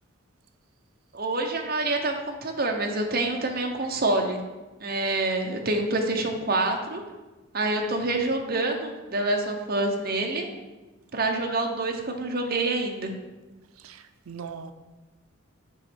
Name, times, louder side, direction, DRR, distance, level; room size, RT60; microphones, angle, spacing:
voice 1, 1.1-4.4 4.8-7.0 7.5-10.5 11.1-13.1, right 2 dB, 45° right, 2 dB, 0.9 m, -27 dB
voice 2, 13.8-14.7, right 6 dB, 85° right, 10 dB, 0.5 m, -40 dB
7.9 x 3.1 x 6.2 m, 1.2 s
head